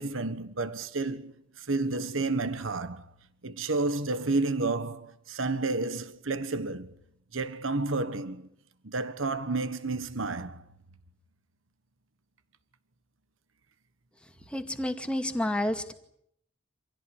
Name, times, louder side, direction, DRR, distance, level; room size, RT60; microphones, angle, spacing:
voice 1, 0.0-3.1 3.4-6.9 7.3-8.5 8.8-10.6, right 3 dB, 90° right, 1.4 m, -31 dB
voice 2, 14.5-15.9, left 1 dB, 5° left, 2.2 m, -30 dB
27.0 x 17.0 x 9.9 m
head